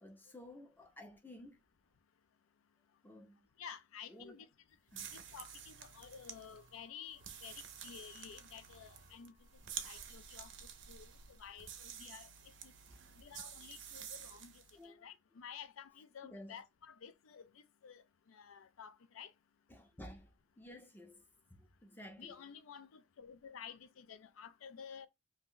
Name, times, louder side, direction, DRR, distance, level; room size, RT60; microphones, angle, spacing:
voice 1, 0.0-1.6 3.0-3.5 4.1-4.4 4.9-5.1 12.9-13.0 14.7-15.0 16.2-16.6 19.7-22.4, left 1 dB, 10° left, 0.5 m, -54 dB
voice 2, 3.6-4.5 5.1-9.3 9.8-10.5 10.9-11.1 11.4-12.3 12.6-12.7 13.2-19.3 22.2-25.1, left 7 dB, 85° left, 0.4 m, -52 dB
sound 1, 4.9-14.8, right 8 dB, 60° right, 0.5 m, -50 dB
2.5 x 2.1 x 3.6 m
head